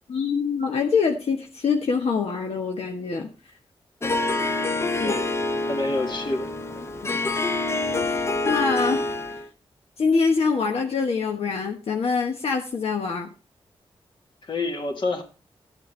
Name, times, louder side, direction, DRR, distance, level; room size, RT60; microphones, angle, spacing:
voice 1, 0.1-3.3 5.0-5.1 7.0-7.2 8.1-9.0 9.3-9.4 10.0-13.3, left 5 dB, 75° left, 1.1 m, -25 dB
Harp, 4.0-9.5, left 2 dB, 25° left, 0.7 m, -26 dB
voice 2, 5.6-6.5 14.4-15.2, left 2 dB, 50° left, 1.8 m, -28 dB
14.0 x 8.5 x 3.2 m
wide cardioid pair, 125°, 10 cm